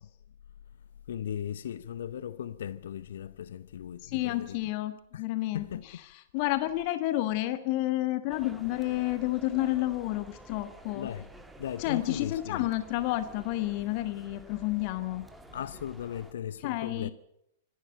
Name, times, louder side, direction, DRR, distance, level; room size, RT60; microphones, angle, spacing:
voice 1, 1.1-4.6 5.1-5.2 5.5-5.8 10.9-11.3 11.6-12.7 15.5-17.1, left 9 dB, 60° left, 0.8 m, -37 dB
voice 2, 4.0-11.1 11.8-15.3 16.6-17.1, left 16 dB, 40° left, 1.3 m, -30 dB
sound 1, 8.3-16.3, right 2 dB, 5° right, 1.9 m, -51 dB
25.0 x 11.5 x 9.2 m
figure-of-eight pair, 100°, 0 cm